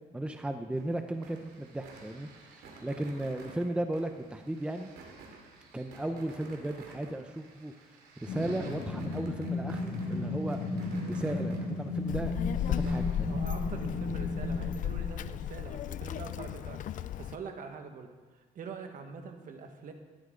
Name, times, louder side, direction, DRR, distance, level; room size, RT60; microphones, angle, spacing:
voice 1, 0.1-4.9 5.7-7.7 8.2-10.6 11.1-12.4 12.7-13.4, right 1 dB, 5° right, 6 dB, 0.8 m, -35 dB
sound 1, 0.8-13.2, right 4 dB, 75° right, 2.7 m, -53 dB
sound 2, 8.3-15.0, left 2 dB, 75° left, 2.3 m, -34 dB
Child speech kid speaking, 12.1-17.4, left 11 dB, 50° left, 0.5 m, -35 dB
voice 2, 12.8-19.9, right 5 dB, 50° right, 5 dB, 1.7 m, -44 dB
16.5 x 12.5 x 3.9 m, 1.3 s
cardioid pair, 110°, 17 cm